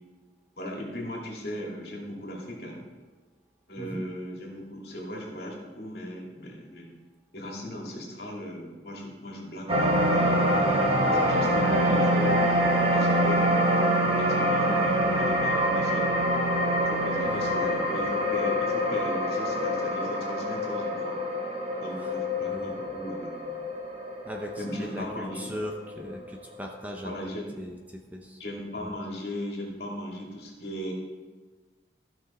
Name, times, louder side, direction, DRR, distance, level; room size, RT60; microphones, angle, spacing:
voice 1, 0.6-2.8 3.7-6.9 7.3-10.4 11.1-12.4 12.9-13.7 14.1-16.1 16.8-21.2 21.8-23.6 24.6-25.6 27.0-27.6 28.4-30.9, equal, 60° left, -2 dB, 2.5 m, -38 dB
sound 1, 9.7-26.2 26.6-26.7, equal, 35° right, 1.3 m, -25 dB
voice 2, 22.4-22.8 24.2-27.2 27.6-28.4 28.8-28.9, equal, 10° right, 1 dB, 0.7 m, -39 dB
14.5 x 6.1 x 4.3 m, 1.4 s
head